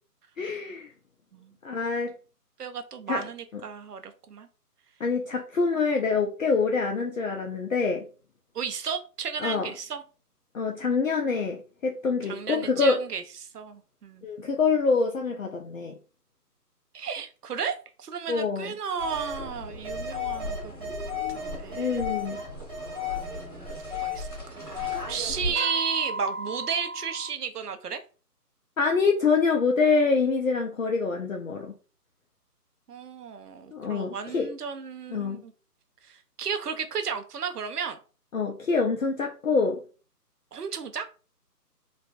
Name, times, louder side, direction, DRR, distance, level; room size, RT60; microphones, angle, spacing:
voice 1, 0.4-0.9 1.6-2.1 3.1-3.2 3.5-3.6 5.0-8.1 9.4-9.7 10.5-13.0 14.2-16.0 18.3-18.7 21.7-22.4 28.8-31.8 33.7-34.5 35.1-35.4 38.3-39.8, left 4 dB, 55° left, 0.5 m, -25 dB
voice 2, 2.6-4.5 8.5-10.0 12.3-13.2 13.5-14.3 16.9-20.9 21.3-22.1 23.2-28.0 32.9-35.5 36.0-38.0 40.5-41.1, right 6 dB, 70° right, 0.6 m, -34 dB
sound 1, 19.0-25.5, left 1 dB, 5° left, 1.2 m, -38 dB
sound 2, 19.0-19.4 19.8-25.2 25.5-27.3, left 3 dB, 15° right, 0.8 m, -34 dB
3.3 x 2.2 x 2.4 m
figure-of-eight pair, 155°, 48 cm